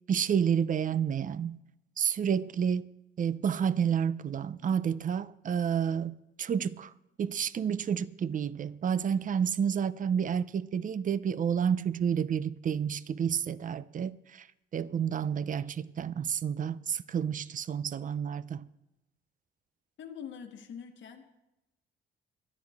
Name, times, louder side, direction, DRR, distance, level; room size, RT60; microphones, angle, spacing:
voice 1, 0.1-1.6 2.0-2.9 3.2-6.9 7.2-14.5 14.7-18.7, right 8 dB, 40° right, 0.6 m, -30 dB
voice 2, 20.0-21.4, left 7 dB, 70° left, 1.5 m, -44 dB
23.5 x 9.7 x 3.6 m
cardioid pair, 90°, 20 cm